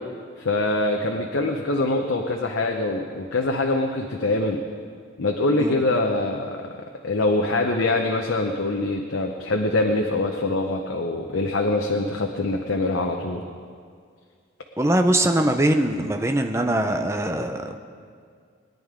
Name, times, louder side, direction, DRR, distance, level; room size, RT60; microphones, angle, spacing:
voice 1, 0.4-4.6 5.2-6.7 7.0-13.4, left 2 dB, 85° left, 2 dB, 0.8 m, -24 dB
voice 2, 14.8-17.8, right 1 dB, 15° right, 5 dB, 0.7 m, -22 dB
21.0 x 10.5 x 3.8 m, 2.1 s
head